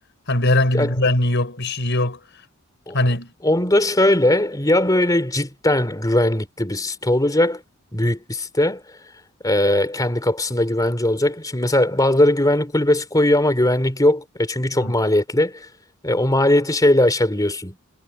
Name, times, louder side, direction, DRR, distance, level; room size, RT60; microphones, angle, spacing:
voice 1, 0.3-2.2 2.9-3.3 14.7-14.9, left 1 dB, 60° left, 4.8 m, -20 dB
voice 2, 3.4-7.6 7.9-8.8 9.4-15.7 16.0-17.8, left 1 dB, 20° left, 3.3 m, -19 dB
head